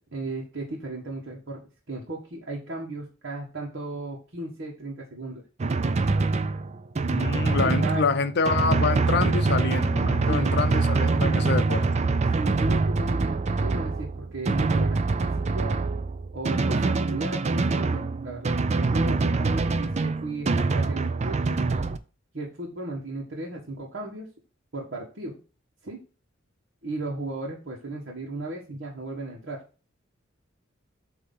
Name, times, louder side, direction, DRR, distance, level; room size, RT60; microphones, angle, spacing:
voice 1, 0.0-5.4 7.4-8.0 10.3-10.5 12.3-15.8 16.3-21.6 22.3-24.3 24.7-25.4 25.8-26.0 26.8-29.6, right 2 dB, 60° right, 1.4 m, -35 dB
Drum, 5.6-22.0, right 3 dB, 35° right, 0.4 m, -24 dB
voice 2, 7.1-11.9, left 4 dB, 55° left, 0.6 m, -27 dB
8.1 x 2.8 x 5.4 m
head